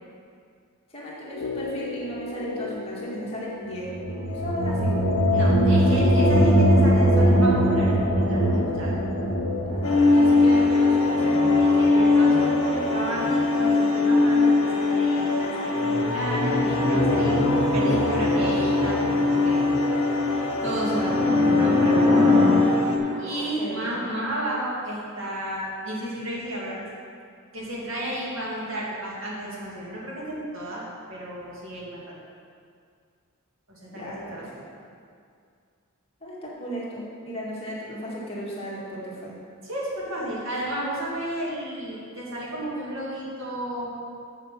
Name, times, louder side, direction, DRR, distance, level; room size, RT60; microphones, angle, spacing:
voice 1, 0.9-3.9 4.3-5.0 9.7-11.5 23.0-24.0 33.9-34.7 36.2-39.3, equal, 30° left, -6 dB, 2.1 m, -35 dB
sound 1, 1.3-13.4 13.6-13.7, left 4 dB, 85° left, 0.6 m, -37 dB
sound 2, 3.8-14.6 15.7-22.5, equal, 30° right, 2.6 m, -24 dB
voice 2, 5.3-9.0 11.6-17.5 17.7-19.6 20.6-22.3 23.2-26.8 27.5-32.2 33.7-34.5 39.6-43.9, right 1 dB, 65° right, -5 dB, 2.3 m, -32 dB
sound 3, 9.8-23.0, left 3 dB, 70° left, 1.1 m, -21 dB
7.3 x 7.1 x 5.9 m, 2.2 s
head